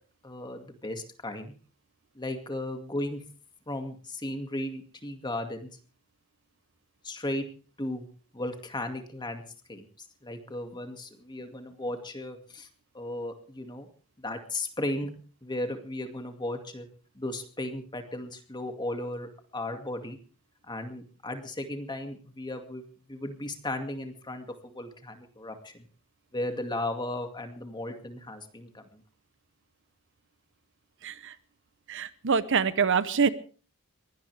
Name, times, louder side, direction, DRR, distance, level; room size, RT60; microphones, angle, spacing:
voice 1, 0.2-1.5 2.1-3.2 3.7-5.7 7.0-7.5 7.8-8.1 8.3-9.4 9.7-9.9 10.2-12.7 12.9-13.9 14.2-15.1 15.4-16.9 17.2-20.2 20.7-25.9 26.3-29.0, left 1 dB, 20° left, 6 dB, 2.2 m, -35 dB
voice 2, 31.0-31.3 31.9-33.3, right 6 dB, 60° right, 15 dB, 0.8 m, -25 dB
22.0 x 17.0 x 3.5 m, 0.40 s
head